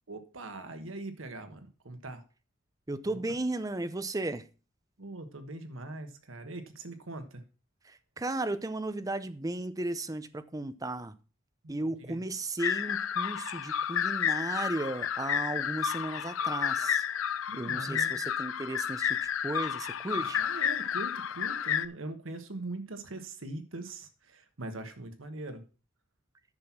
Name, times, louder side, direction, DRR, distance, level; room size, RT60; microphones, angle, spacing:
voice 1, 0.1-2.2 3.0-3.2 5.0-7.4 11.6-11.7 12.0-12.2 17.5-18.2 20.2-25.6, right 2 dB, 85° right, 1.3 m, -41 dB
voice 2, 2.9-4.4 7.8-11.1 11.7-17.0 17.5-20.4, right 2 dB, 20° right, 0.6 m, -35 dB
sound 1, 12.6-21.9, left 9 dB, 90° left, 0.6 m, -31 dB
9.7 x 6.1 x 5.9 m
head